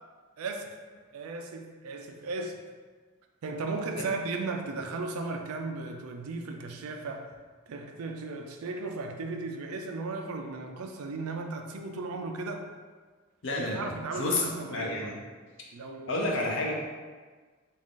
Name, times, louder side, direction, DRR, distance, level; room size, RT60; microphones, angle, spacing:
voice 1, 0.4-0.7 1.1-2.6 3.4-7.3 7.7-12.7 13.6-15.2 15.7-16.5, right 3 dB, 85° right, 4 dB, 0.4 m, -36 dB
voice 2, 13.4-13.8 14.2-15.1 16.1-16.7, left 2 dB, 60° left, -1 dB, 0.7 m, -30 dB
3.6 x 2.4 x 3.8 m, 1.4 s
head